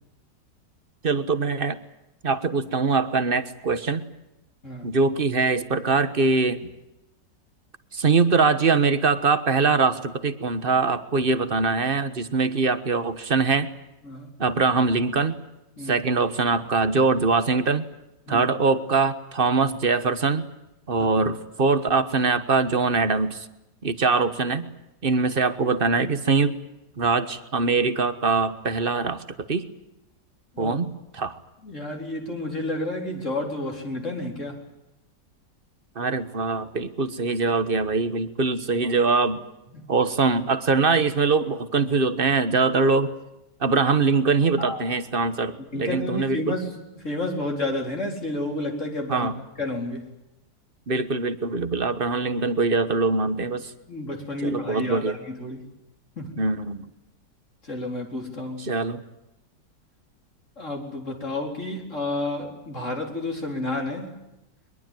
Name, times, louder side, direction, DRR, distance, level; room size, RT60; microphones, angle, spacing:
voice 1, 1.0-1.8 2.2-4.0 4.8-6.7 7.9-13.7 14.4-15.4 15.9-17.8 18.3-20.5 20.9-23.5 23.8-24.7 25.0-26.5 27.0-29.2 29.5-29.7 30.6-31.4 35.9-39.4 39.9-43.1 43.6-46.4 49.1-49.3 50.9-53.7 54.4-55.1 56.4-56.9 58.6-59.0, right 4 dB, 35° right, 12 dB, 1.4 m, -23 dB
voice 2, 31.6-34.6 38.8-38.9 39.7-39.9 44.6-44.9 45.7-49.3 49.6-50.1 53.9-55.7 56.2-56.4 57.6-58.7 60.6-64.2, left 2 dB, 40° left, 2 dB, 4.5 m, -31 dB
23.5 x 22.5 x 9.2 m, 0.90 s
omnidirectional pair, 1.9 m